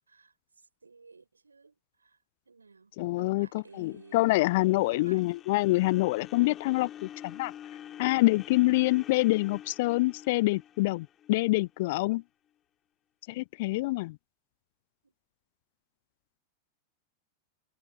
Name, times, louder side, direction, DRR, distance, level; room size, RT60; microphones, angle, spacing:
voice 1, 0.8-2.2 2.5-4.4 4.9-5.3 15.0-15.1, right 4 dB, 75° right, 5.1 m, -54 dB
voice 2, 3.0-7.5 8.0-12.2 13.3-14.2, left 21 dB, 50° left, 0.4 m, -26 dB
sound 1, 3.7-11.9, left 10 dB, 30° left, 6.7 m, -47 dB
figure-of-eight pair, 90°, 0 cm